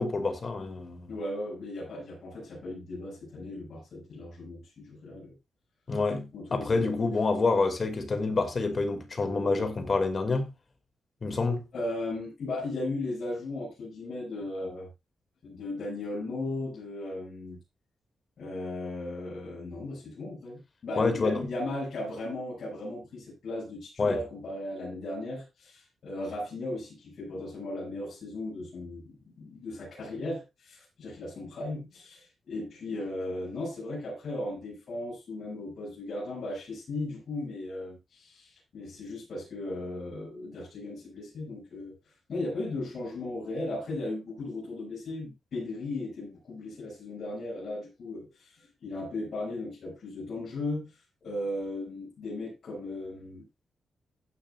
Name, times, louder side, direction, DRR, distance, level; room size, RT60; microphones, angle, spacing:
voice 1, 0.0-1.1 5.9-10.5 11.2-11.6 21.0-21.5 24.0-24.2, left 3 dB, 35° left, 2.3 m, -27 dB
voice 2, 1.1-5.3 6.3-7.1 11.7-14.9 15.4-17.6 18.4-50.9 51.2-53.4, left 2 dB, 60° left, 6.8 m, -36 dB
15.0 x 10.0 x 2.5 m
wide cardioid pair, 155°, 0 cm